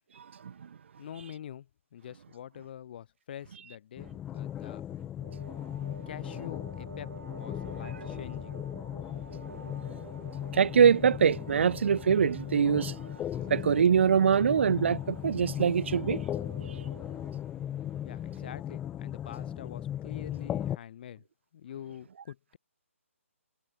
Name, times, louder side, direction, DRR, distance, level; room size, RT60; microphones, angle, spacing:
voice 1, 1.0-4.8 6.1-7.1 7.4-8.6 18.0-21.2 21.5-22.6, left 10 dB, 45° left, 4.4 m, -45 dB
sound 1, 4.0-20.8, left 11 dB, 10° left, 0.7 m, -37 dB
sound 2, 5.2-17.4, right 3 dB, 85° right, 6.6 m, -49 dB
voice 2, 10.5-13.0 13.5-16.3 16.6-16.7, right 7 dB, 55° right, 0.4 m, -24 dB
figure-of-eight pair, 145°, 8 cm